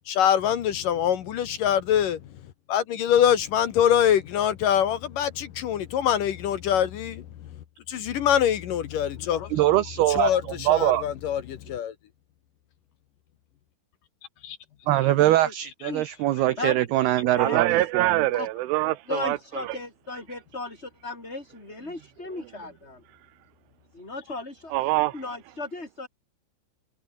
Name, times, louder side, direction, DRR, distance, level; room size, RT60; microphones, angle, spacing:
voice 1, 0.1-2.2 2.7-7.3 7.9-9.5 10.1-11.9 14.4-14.6, left 9 dB, 65° left, 2.4 m, -24 dB
voice 2, 9.5-10.3 10.7-11.0 14.9-18.2, right 15 dB, 70° right, 2.8 m, -22 dB
voice 3, 16.6-17.1 17.4-17.8 18.3-18.5 19.1-23.0 23.9-24.7 25.1-26.1, left 2 dB, 15° left, 5.5 m, -36 dB
voice 4, 17.4-19.8 24.7-25.2, right 18 dB, 90° right, 3.5 m, -25 dB
omnidirectional pair, 5.5 m